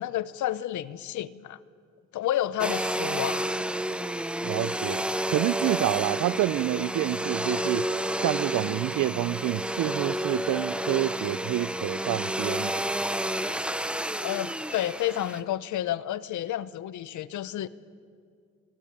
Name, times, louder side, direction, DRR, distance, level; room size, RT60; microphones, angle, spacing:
voice 1, 0.0-1.6 2.1-3.5 14.2-17.7, left 12 dB, 75° left, 0.9 m, -30 dB
Domestic sounds home sounds, 2.6-15.4, right 1 dB, 5° right, 0.9 m, -30 dB
voice 2, 4.4-7.9 8.2-12.8, right 15 dB, 75° right, 0.7 m, -28 dB
26.0 x 19.0 x 9.0 m
cardioid pair, 90°, 30 cm